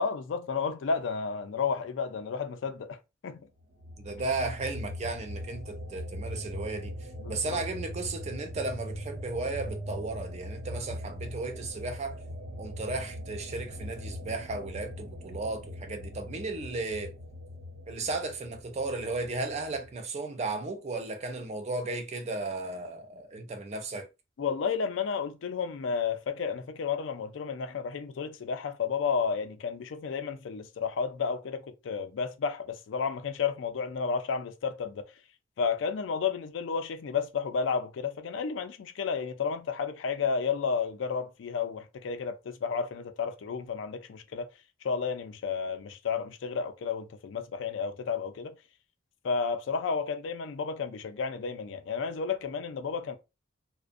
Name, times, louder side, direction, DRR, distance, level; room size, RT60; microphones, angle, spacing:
voice 1, 0.0-3.0 3.2-3.5 7.2-7.6 24.4-35.0 35.6-44.5 44.8-48.5 49.2-53.2, left 5 dB, 90° left, 0.4 m, -32 dB
sound 1, 3.8-19.9, equal, 85° right, 0.8 m, -41 dB
voice 2, 4.0-6.9 7.3-12.2 12.6-17.1 17.9-24.1, right 3 dB, 35° right, 0.4 m, -35 dB
2.4 x 2.1 x 2.4 m
head